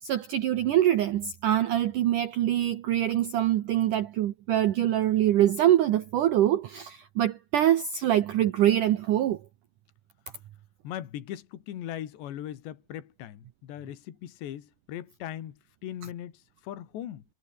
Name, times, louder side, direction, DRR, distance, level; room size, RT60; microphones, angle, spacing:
voice 1, 0.0-9.4, right 12 dB, 85° right, 1.8 m, -24 dB
voice 2, 10.8-17.2, left 11 dB, 70° left, 4.2 m, -39 dB
omnidirectional pair, 5.3 m